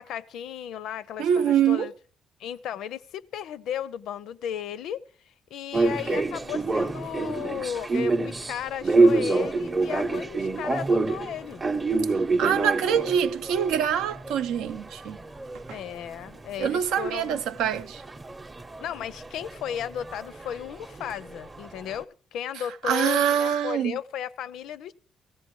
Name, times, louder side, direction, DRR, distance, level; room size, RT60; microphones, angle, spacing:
voice 1, 0.0-1.9 2.4-11.6 15.7-17.4 18.8-24.9, left 9 dB, 80° left, 0.5 m, -35 dB
voice 2, 1.2-1.9 12.4-15.2 15.7-15.8 16.6-18.0 22.8-24.0, right 8 dB, 90° right, 0.5 m, -24 dB
sound 1, 5.7-16.6 16.8-22.0, right 3 dB, 25° right, 0.7 m, -27 dB
17.0 x 15.5 x 3.1 m
cardioid pair, 90°, 0 cm